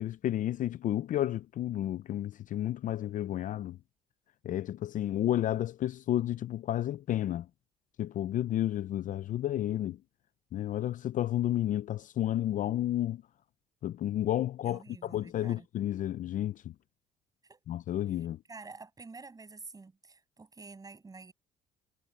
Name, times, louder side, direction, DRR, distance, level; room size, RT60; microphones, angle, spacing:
voice 1, 0.0-3.8 4.4-7.5 8.0-10.0 10.5-13.2 13.8-16.7 17.7-18.4, left 12 dB, 50° left, 0.5 m, -31 dB
voice 2, 14.6-15.7 17.4-17.6 18.5-21.3, right 4 dB, 20° right, 7.3 m, -49 dB
cardioid pair, 110°, 17 cm